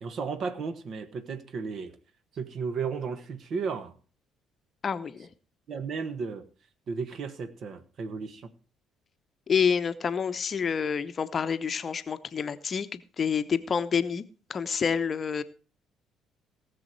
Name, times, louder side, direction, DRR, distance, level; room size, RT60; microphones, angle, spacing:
voice 1, 0.0-2.0 2.3-3.9 5.7-6.4 6.9-8.5, right 5 dB, 45° right, 1.3 m, -34 dB
voice 2, 4.8-5.3 9.5-14.2 14.5-15.4, left 6 dB, 40° left, 0.8 m, -28 dB
18.0 x 7.1 x 4.6 m
figure-of-eight pair, 50°, 0 cm